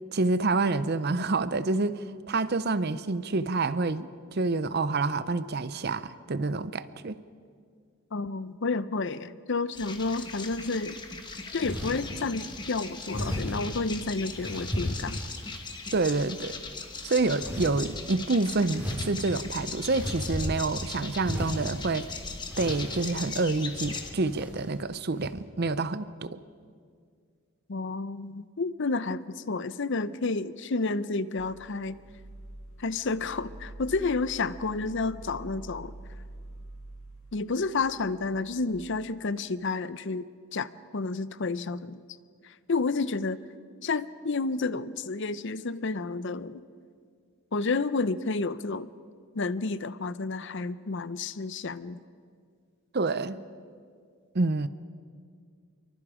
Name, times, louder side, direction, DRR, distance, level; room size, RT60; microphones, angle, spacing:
voice 1, 0.1-7.2 15.9-16.6 17.0-22.1 22.6-26.4 52.9-53.4 54.3-54.7, right 3 dB, 45° right, 14 dB, 0.6 m, -28 dB
voice 2, 8.1-11.0 11.5-15.2 27.7-32.0 32.8-35.9 37.3-42.0 42.4-43.4 43.8-46.6 47.5-48.9 49.3-52.0, left 3 dB, 55° left, 15 dB, 0.6 m, -30 dB
sound 1, 9.7-24.1, left 4 dB, 20° left, 1.4 m, -39 dB
sound 2, 11.6-12.1 13.1-13.6 14.3-15.6 16.0-16.6 17.4-17.9 18.7-20.8 21.2-21.8 22.5-23.2 23.7-24.7 25.2-25.3, left 1 dB, 5° right, 3.7 m, -35 dB
sound 3, 31.4-38.8, right 2 dB, 75° left, 2.8 m, -46 dB
27.5 x 23.5 x 5.0 m, 2.1 s
head